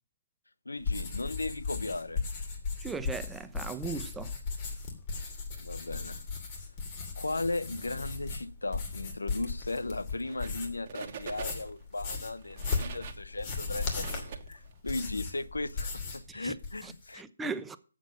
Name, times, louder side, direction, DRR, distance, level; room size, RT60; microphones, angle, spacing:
voice 1, 0.7-2.3 5.6-6.2 7.2-17.2, left 2 dB, 90° left, 0.6 m, -36 dB
sound 1, 0.8-10.9 11.2-16.3 16.5-17.1, left 4 dB, 35° left, 2.8 m, -37 dB
voice 2, 2.8-4.3 16.3-16.5 16.8-17.8, right 4 dB, 5° right, 0.5 m, -38 dB
sound 2, 10.2-10.6 10.9-11.8 12.3-15.0, right 7 dB, 35° right, 1.4 m, -44 dB
8.0 x 7.5 x 6.5 m
figure-of-eight pair, 145°, 0 cm